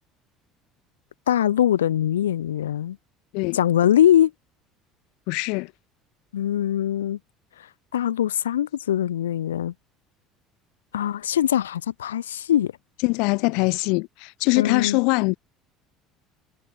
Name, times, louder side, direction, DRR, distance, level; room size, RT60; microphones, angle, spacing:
voice 1, 1.3-3.0 3.5-4.3 6.3-7.2 7.9-9.7 10.9-12.7 14.6-15.0, left 11 dB, 80° left, 1.8 m, -22 dB
voice 2, 5.3-5.7 13.0-15.4, left 31 dB, 65° left, 5.2 m, -22 dB
hypercardioid pair, 65°, 0 cm